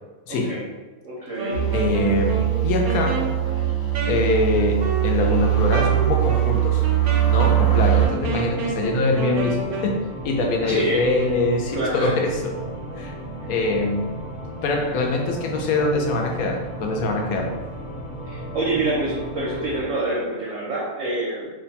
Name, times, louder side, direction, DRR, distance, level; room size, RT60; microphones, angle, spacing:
voice 1, 0.3-0.6 1.0-1.7 10.6-11.0 11.7-12.1 18.3-21.5, right 2 dB, 65° right, -7 dB, 1.1 m, -26 dB
Wind instrument woodwind instrument, 1.3-10.0, right 4 dB, 90° right, 1.1 m, -30 dB
sound 1, 1.5-8.1, right 13 dB, 70° left, 1.4 m, -21 dB
voice 2, 1.7-3.3 4.1-6.8 7.3-12.6 13.0-13.1 13.5-14.2 14.6-17.5, left 2 dB, 85° left, 2 dB, 1.1 m, -23 dB
sound 2, 7.2-19.9, right 1 dB, 50° left, 1.4 m, -35 dB
2.9 x 2.2 x 4.0 m, 1.2 s
omnidirectional pair, 1.5 m